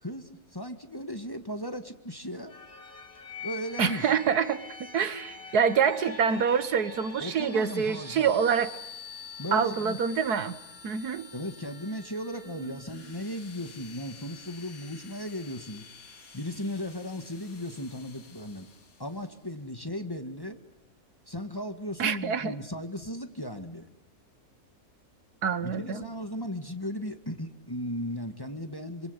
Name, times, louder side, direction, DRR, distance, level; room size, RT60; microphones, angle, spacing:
voice 1, 0.0-2.5 3.4-4.1 7.2-8.4 9.4-10.0 11.3-15.9 16.3-18.7 19.0-20.6 21.3-23.9 25.6-29.1, equal, 15° left, 7 dB, 1.7 m, -36 dB
sound 1, 2.5-19.2, left 5 dB, 65° left, 2.5 m, -46 dB
voice 2, 3.8-8.7 9.5-10.6 10.8-11.3 12.7-12.8 22.0-22.5 25.4-26.1, right 7 dB, 80° right, 13 dB, 1.8 m, -26 dB
28.0 x 25.5 x 8.1 m, 0.85 s
omnidirectional pair, 1.6 m